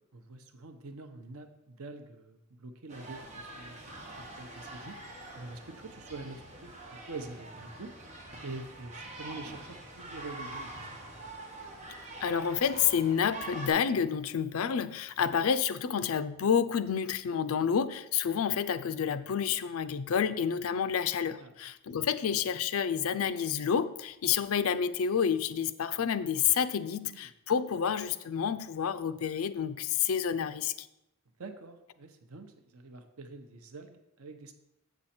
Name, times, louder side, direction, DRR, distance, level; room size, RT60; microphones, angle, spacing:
voice 1, 0.1-3.8 4.2-5.0 5.3-7.9 8.4-10.8 21.4-21.5 27.0-27.3 31.4-34.5, right 3 dB, 90° right, 7 dB, 0.7 m, -45 dB
sound 1, 2.9-13.7, right 2 dB, 35° right, 1.3 m, -45 dB
voice 2, 12.2-30.9, left 7 dB, 75° left, 13 dB, 0.4 m, -29 dB
8.2 x 6.2 x 4.3 m, 0.88 s
head